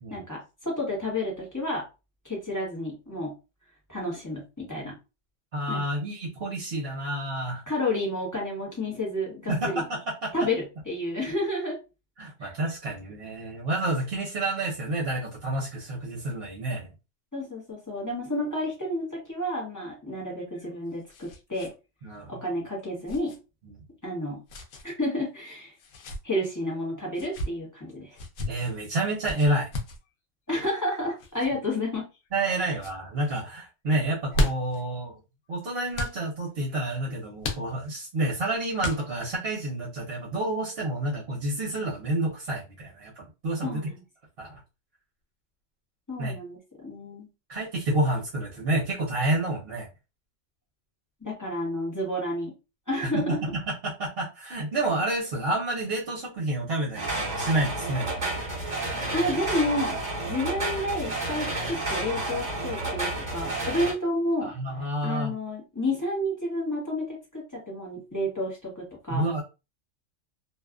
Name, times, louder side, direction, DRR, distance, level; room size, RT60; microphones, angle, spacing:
voice 1, 0.1-1.9 2.2-3.3 3.9-4.9 5.7-5.8 7.7-9.8 10.3-11.8 12.4-12.5 17.3-21.7 22.3-23.3 24.0-24.4 24.8-25.7 26.2-28.2 30.5-32.0 32.5-32.6 43.6-44.0 46.1-47.3 51.2-52.5 52.9-53.4 59.1-60.0 60.2-64.5 65.0-69.3, left 1 dB, 15° left, -3 dB, 0.8 m, -30 dB
voice 2, 5.5-7.6 9.5-10.3 12.2-16.9 22.0-22.4 23.7-23.8 28.4-29.7 32.3-35.2 35.5-43.8 44.4-44.6 46.2-46.4 47.5-49.9 53.0-58.1 64.4-65.3 69.1-69.4, right 1 dB, 55° right, -4 dB, 0.9 m, -29 dB
sound 1, 20.4-21.7 22.0-22.1 23.1-23.4 24.5-24.8 25.8-26.2 27.1-27.5 28.1-28.5 29.2-30.0 31.2-31.5 32.1-32.5 32.7-33.0 34.0-34.8 35.9-36.2 37.4-38.0 38.8-39.3, left 1 dB, 85° left, 1.0 m, -33 dB
sound 2, 56.9-63.9, right 2 dB, 35° right, 1.3 m, -31 dB
2.6 x 2.3 x 2.3 m, 0.28 s
omnidirectional pair, 1.3 m